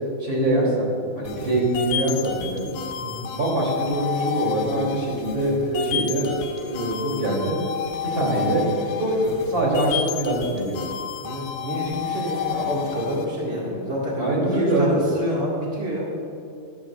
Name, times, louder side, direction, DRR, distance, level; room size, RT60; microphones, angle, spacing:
voice 1, 0.2-2.7 3.3-6.3 6.7-7.5 8.1-8.6 9.0-10.8 14.1-15.0, right 1 dB, 25° right, -4 dB, 3.0 m, -23 dB
sound 1, 1.3-13.3, left 8 dB, 85° left, 3.0 m, -31 dB
voice 2, 11.2-16.0, equal, 65° right, -5 dB, 0.6 m, -28 dB
18.0 x 11.5 x 2.5 m, 2.7 s
omnidirectional pair, 4.8 m